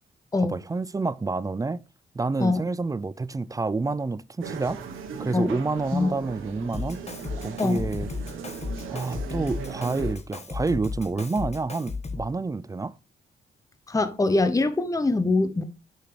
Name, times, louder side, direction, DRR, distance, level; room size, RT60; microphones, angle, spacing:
voice 1, 0.4-1.8 2.1-4.8 5.2-7.0 7.4-8.1 8.9-13.0, right 3 dB, 15° right, 0.3 m, -28 dB
sound 1, 4.4-10.1, right 6 dB, 90° right, 1.1 m, -38 dB
Drum kit, 6.7-12.3, left 4 dB, 30° left, 1.4 m, -34 dB
voice 2, 13.9-15.6, left 3 dB, 15° left, 0.8 m, -23 dB
6.5 x 5.8 x 3.2 m
cardioid pair, 60°, 20 cm